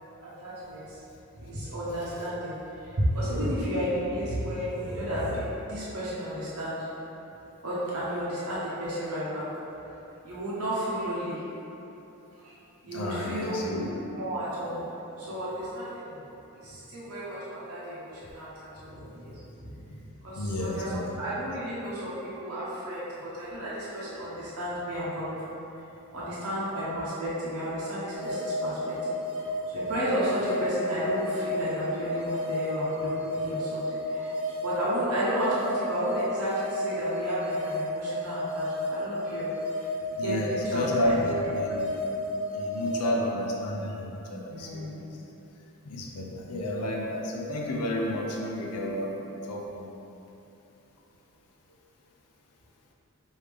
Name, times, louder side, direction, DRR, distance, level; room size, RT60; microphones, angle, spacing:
voice 1, 0.2-1.0 1.4-6.9 7.6-9.4 10.2-11.4 12.3-12.5 12.8-13.7 14.1-14.8 15.2-16.2 16.6-19.8 20.2-25.4 26.1-29.5 29.7-39.5 40.1-41.2 44.4-45.2, equal, 75° right, -9 dB, 0.8 m, -33 dB
voice 2, 12.9-14.0 20.4-21.4 40.2-42.0 42.5-45.0 45.8-49.9, left 1 dB, 85° left, -1 dB, 0.5 m, -31 dB
sound 1, 28.1-43.1, left 1 dB, 25° right, 0.6 m, -32 dB
4.9 x 2.7 x 3.4 m, 3.0 s
head